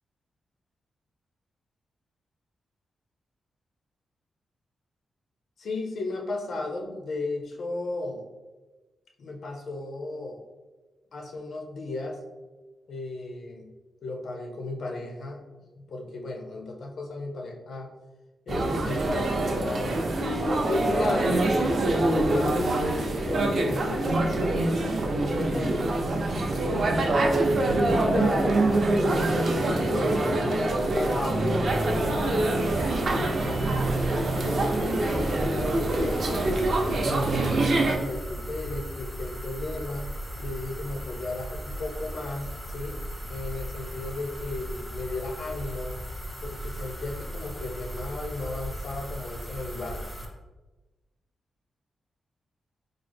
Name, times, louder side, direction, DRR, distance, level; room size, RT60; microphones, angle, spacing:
voice 1, 5.6-8.2 9.2-10.4 11.1-12.2 12.9-13.7 14.0-15.4 15.8-17.9 18.5-20.0 20.5-22.8 23.2-26.0 26.6-31.6 31.9-36.5 36.8-40.1 40.4-43.0 43.3-45.9 46.4-50.0, left 2 dB, 65° left, 2 dB, 0.5 m, -35 dB
sound 1, 18.5-38.0, right 2 dB, 50° right, 0.4 m, -25 dB
sound 2, 31.7-50.3, equal, 5° left, 0.4 m, -37 dB
3.6 x 2.0 x 3.3 m, 1.2 s
wide cardioid pair, 130°, 0 cm